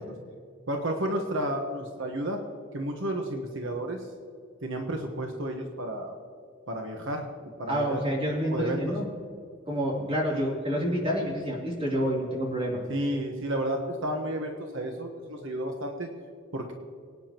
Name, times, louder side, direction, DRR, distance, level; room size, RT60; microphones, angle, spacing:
voice 1, 0.7-2.4 2.7-4.1 4.6-6.1 6.7-7.3 7.6-8.0 8.5-8.9 10.3-10.5 12.9-16.1 16.5-16.7, right 1 dB, 70° right, 3 dB, 1.2 m, -31 dB
voice 2, 7.7-9.1 9.7-12.8, equal, 30° right, -3 dB, 3.2 m, -28 dB
24.0 x 9.5 x 3.0 m, 2.2 s
head